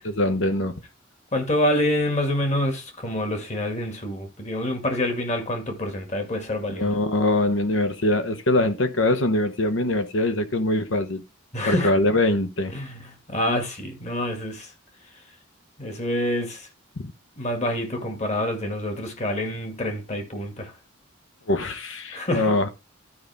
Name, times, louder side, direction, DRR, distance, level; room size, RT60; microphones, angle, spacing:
voice 1, 0.2-0.7 6.7-11.2 11.6-12.7 17.0-17.1 21.5-22.7, left 1 dB, 70° left, 1.0 m, -23 dB
voice 2, 1.3-6.9 11.5-11.9 12.7-14.7 15.8-16.7 17.4-20.7 22.1-22.6, left 1 dB, 35° left, 2.0 m, -27 dB
12.5 x 5.3 x 3.5 m
head